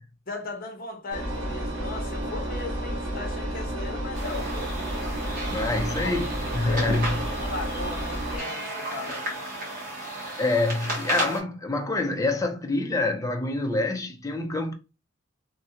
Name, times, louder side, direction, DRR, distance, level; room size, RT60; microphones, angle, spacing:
voice 1, 0.3-4.8 6.0-6.2 6.6-6.9 7.2-9.3, left 3 dB, 45° left, 0.8 m, -38 dB
Engine, 1.1-8.4, right 1 dB, 90° right, 1.1 m, -31 dB
sound 1, 4.1-11.4, right 1 dB, 50° right, 1.5 m, -34 dB
voice 2, 5.5-7.2 10.2-14.7, left 2 dB, 15° left, 0.4 m, -26 dB
3.2 x 2.5 x 2.8 m
head